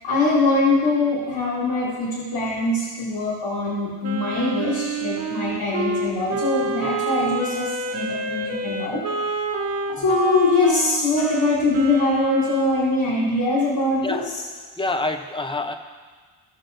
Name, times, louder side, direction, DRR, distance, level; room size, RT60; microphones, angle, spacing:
voice 1, 0.0-9.0 9.9-14.2, left 2 dB, 70° left, -9 dB, 2.9 m, -22 dB
Wind instrument woodwind instrument, 4.0-12.9, right 2 dB, 35° right, 0.9 m, -28 dB
voice 2, 14.8-15.7, left 2 dB, 10° left, 7 dB, 0.5 m, -27 dB
16.5 x 6.1 x 3.9 m, 1.5 s
wide cardioid pair, 145°, 44 cm